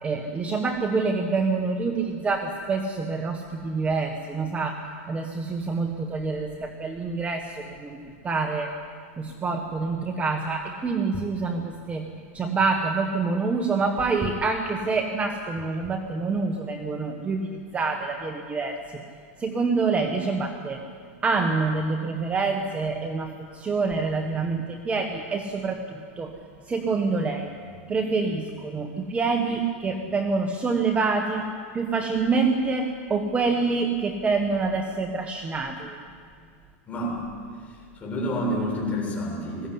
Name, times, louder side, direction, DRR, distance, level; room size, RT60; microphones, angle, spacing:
voice 1, 0.0-8.7 9.2-12.1 12.3-19.0 19.4-20.8 21.2-26.3 26.7-27.5 27.9-36.0, right 4 dB, 15° right, 4 dB, 1.3 m, -26 dB
voice 2, 36.8-37.2 37.7-39.7, equal, 20° left, -2 dB, 7.2 m, -29 dB
20.5 x 16.5 x 9.8 m, 2.1 s
supercardioid pair, 135°, 8 cm